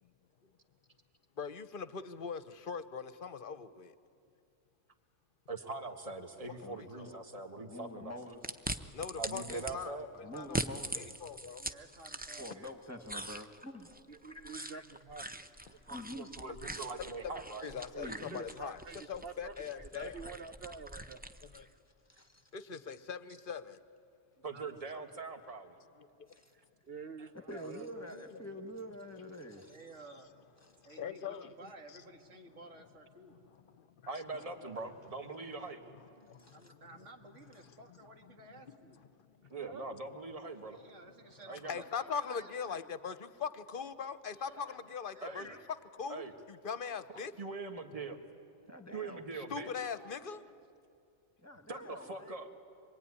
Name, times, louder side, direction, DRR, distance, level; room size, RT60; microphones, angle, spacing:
voice 1, 1.4-3.9 6.6-7.2 8.8-10.6 11.0-11.6 17.2-18.8 19.1-20.3 21.4-21.7 22.5-23.8 26.0-26.3 27.9-28.4 30.7-31.5 33.3-33.9 35.9-36.9 38.4-38.7 39.2-39.6 40.7-41.0 41.7-45.5 46.0-47.3 49.4-50.4, left 6 dB, 50° left, 13 dB, 0.9 m, -42 dB
voice 2, 5.5-8.1 9.2-10.1 15.9-17.7 24.4-25.8 34.1-35.8 39.5-40.8 41.5-41.8 45.2-45.5 46.1-46.3 47.4-48.2 48.9-49.7 51.7-52.5, right 3 dB, 30° right, 5 dB, 1.6 m, -42 dB
voice 3, 7.6-8.6 10.2-11.0 12.4-13.9 14.3-14.8 15.7-16.3 17.6-18.4 22.1-22.5 26.3-26.5 27.3-29.8 36.4-36.6 45.2-45.6 48.7-49.4 51.4-52.5, equal, 15° left, 6 dB, 1.4 m, -47 dB
sound 1, 8.4-9.7 10.4-12.7 13.0-21.7, right 1 dB, 10° right, 0.4 m, -42 dB
voice 4, 11.6-12.8 16.4-17.2 24.4-25.1 29.7-30.3 30.8-33.4 36.5-39.0 40.7-42.9 44.3-45.7 46.1-46.4 46.9-47.4 49.2-50.6, right 2 dB, 75° right, 4 dB, 2.2 m, -56 dB
voice 5, 14.1-15.2 18.3-21.2 26.8-27.9 39.6-39.8, right 5 dB, 55° right, 9 dB, 1.0 m, -47 dB
26.0 x 22.5 x 9.7 m, 2.5 s
omnidirectional pair, 1.3 m